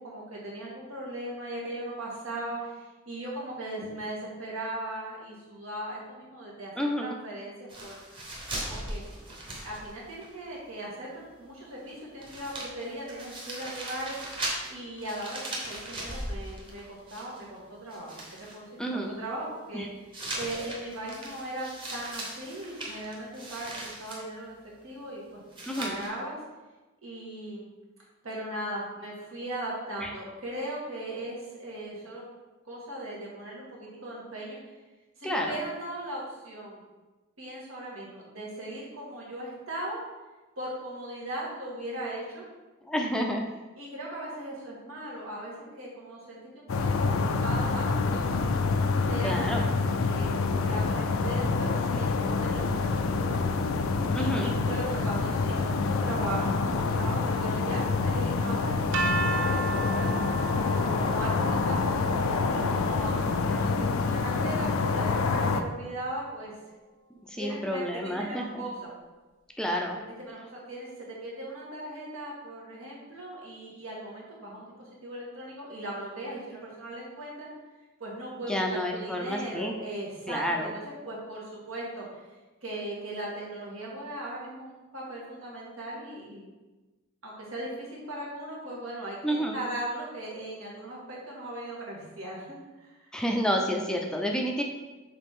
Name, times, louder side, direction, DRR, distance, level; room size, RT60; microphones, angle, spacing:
voice 1, 0.0-6.7 7.0-7.5 7.8-8.0 8.9-9.0 9.6-14.2 14.7-18.2 18.5-24.6 24.8-25.4 25.8-26.4 27.0-27.7 28.2-32.2 32.7-34.7 35.2-36.8 37.4-40.0 40.6-42.4 43.7-48.4 49.1-53.6 54.1-60.1 60.7-66.5 67.4-68.9 70.2-70.4 70.7-77.5 78.0-82.2 82.6-86.5 87.2-92.9, right 1 dB, 80° right, -5 dB, 1.9 m, -38 dB
voice 2, 6.8-7.2 18.8-19.1 19.7-19.9 25.7-26.0 30.0-30.1 35.2-35.6 42.9-43.4 49.2-49.6 54.1-54.5 67.3-68.6 69.6-70.0 78.5-79.7 80.3-80.7 89.2-89.6 93.1-94.6, equal, 5° left, 1 dB, 0.4 m, -29 dB
sound 1, 7.7-10.3 10.5-10.6 11.9-12.0 12.2-17.6 17.9-18.6 20.1-24.2 25.5-26.1, right 1 dB, 25° right, 1.1 m, -38 dB
sound 2, 46.7-65.6, left 4 dB, 75° left, 0.4 m, -27 dB
sound 3, 58.9-64.9, right 2 dB, 60° right, 0.6 m, -35 dB
6.7 x 4.0 x 3.6 m, 1.2 s
head